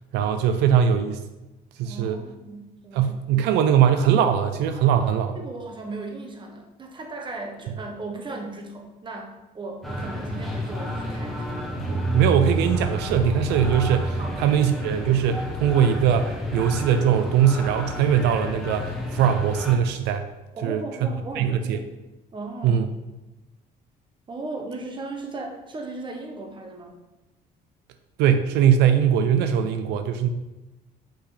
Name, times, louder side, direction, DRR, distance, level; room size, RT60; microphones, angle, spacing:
voice 1, 0.1-1.2 1.8-2.2 2.9-5.4 11.8-20.3 20.6-20.8 21.4-21.8 22.6-22.9 28.2-30.3, right 8 dB, 85° right, 8 dB, 0.4 m, -21 dB
voice 2, 1.8-3.3 5.3-11.6 14.2-14.4 20.5-21.9 22.3-22.9 24.3-27.0, right 2 dB, 30° right, 3 dB, 1.0 m, -36 dB
sound 1, 9.8-19.8, equal, ahead, 1.2 m, -29 dB
6.1 x 5.5 x 3.2 m, 1.0 s
cardioid pair, 110°, 17 cm